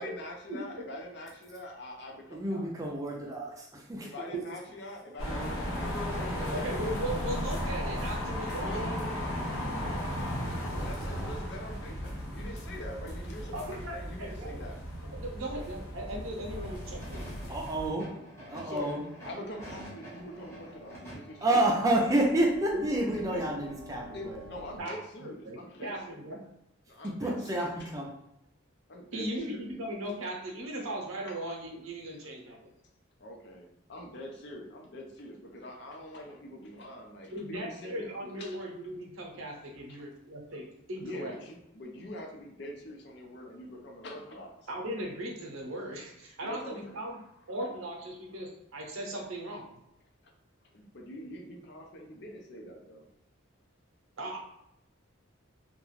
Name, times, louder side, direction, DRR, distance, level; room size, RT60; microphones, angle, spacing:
voice 1, 0.0-2.6 4.0-6.5 8.6-9.9 10.7-14.8 18.6-18.9 19.2-21.6 23.1-23.5 24.1-26.4 26.9-27.9 28.9-29.8 33.2-38.6 41.0-44.5 46.4-46.9 50.7-53.0, left 1 dB, 55° left, 1 dB, 0.5 m, -44 dB
voice 2, 2.3-4.3 17.5-18.1 18.5-19.0 21.4-24.4 27.0-28.1, right 1 dB, 15° right, -1 dB, 0.4 m, -29 dB
sound 1, 5.2-17.9, equal, 85° left, 0.8 m, -35 dB
voice 3, 6.5-8.8 13.5-14.6 15.1-17.3 22.7-22.8 24.8-24.9 25.2-26.5 29.1-32.6 37.3-41.3 44.7-47.2 47.5-49.7 54.2-54.4, right 1 dB, 90° right, -1 dB, 0.7 m, -38 dB
sound 2, 16.4-24.8, equal, 15° left, 0.9 m, -48 dB
2.4 x 2.2 x 3.1 m, 0.82 s
head